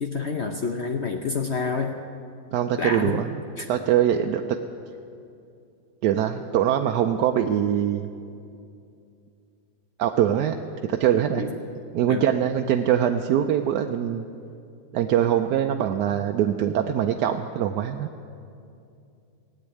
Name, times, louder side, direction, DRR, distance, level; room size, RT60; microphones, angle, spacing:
voice 1, 0.0-1.9 2.8-3.2 3.6-3.7 11.4-11.6 12.1-12.3, left 4 dB, 55° left, 5 dB, 0.8 m, -28 dB
voice 2, 2.5-3.3 3.7-4.4 6.0-8.1 10.0-10.5 10.8-11.5 11.9-14.2 14.9-18.1, right 10 dB, 85° right, 5 dB, 1.2 m, -23 dB
17.0 x 8.2 x 9.7 m, 2.5 s
omnidirectional pair, 1.7 m